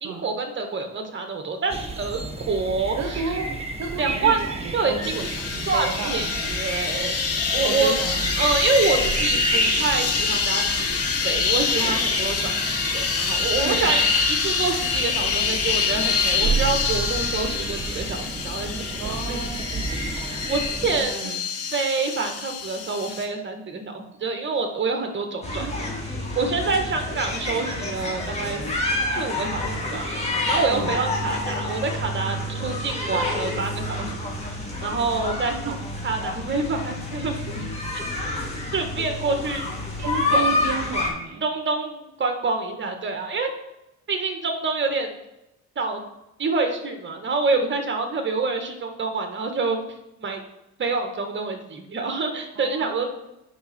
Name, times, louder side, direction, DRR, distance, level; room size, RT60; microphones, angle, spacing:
voice 1, 0.0-3.4 4.0-5.3 5.7-7.1 7.5-8.1 8.4-19.4 19.7-21.4 21.7-25.9 26.3-28.6 29.2-30.1 30.5-34.1 34.8-35.7 36.0-37.7 37.9-38.0 38.7-39.7 40.3-40.4 41.4-43.5 44.1-45.2 45.7-46.0 46.4-49.8 50.2-50.4 50.8-53.1, right 4 dB, 40° right, 5 dB, 1.6 m, -27 dB
sound 1, 1.7-21.0, right 3 dB, 20° right, 1.2 m, -31 dB
voice 2, 3.0-5.2 5.5-6.6 7.6-8.3 13.6-14.0 19.0-19.6 20.9-21.7 25.6-25.8 30.7-31.0 35.5-35.8 40.0-41.4 52.6-53.1, right 6 dB, 65° right, 5 dB, 1.0 m, -32 dB
sound 2, 5.0-23.2, left 5 dB, 50° left, 1.6 m, -26 dB
sound 3, 25.4-41.1, left 2 dB, 20° left, 2.6 m, -28 dB
9.2 x 5.5 x 4.4 m, 0.91 s
cardioid pair, 90°, 30 cm